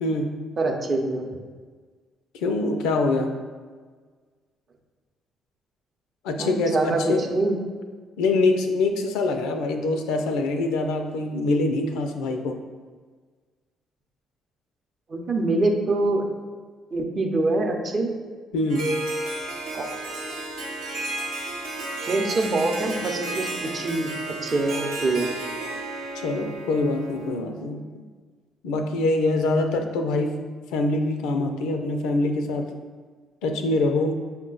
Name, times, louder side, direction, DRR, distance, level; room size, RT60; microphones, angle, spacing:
voice 1, 0.0-0.4 2.3-3.3 6.2-7.3 8.2-12.6 18.5-19.0 26.1-28.0 28.6-30.5 30.7-32.7 33.4-34.1, left 2 dB, 80° left, 5 dB, 0.4 m, -24 dB
voice 2, 0.6-1.3 6.4-7.6 15.1-16.2 16.9-18.1 19.7-19.9 22.0-24.1 24.4-25.3, right 2 dB, 45° right, 3 dB, 0.6 m, -24 dB
Harp, 18.7-27.4, right 2 dB, 80° right, 0.7 m, -32 dB
5.5 x 2.1 x 3.8 m, 1.5 s
hypercardioid pair, 55°, 0 cm